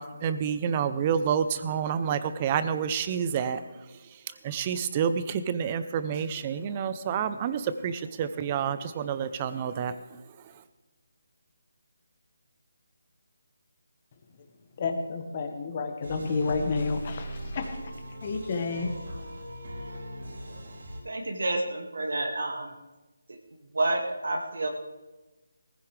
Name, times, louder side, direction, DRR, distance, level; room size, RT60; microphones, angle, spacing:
voice 1, 0.0-10.6, right 7 dB, 25° right, 13 dB, 0.6 m, -29 dB
voice 2, 14.8-17.9 18.2-18.9, left 4 dB, 35° left, 4 dB, 1.4 m, -30 dB
sound 1, 16.0-21.0, equal, 65° right, 4.6 m, -39 dB
voice 3, 21.0-22.7 23.3-23.4 23.7-24.7, right 2 dB, 80° right, 3 dB, 2.0 m, -29 dB
18.5 x 15.0 x 3.3 m, 1.1 s
figure-of-eight pair, 165°, 0 cm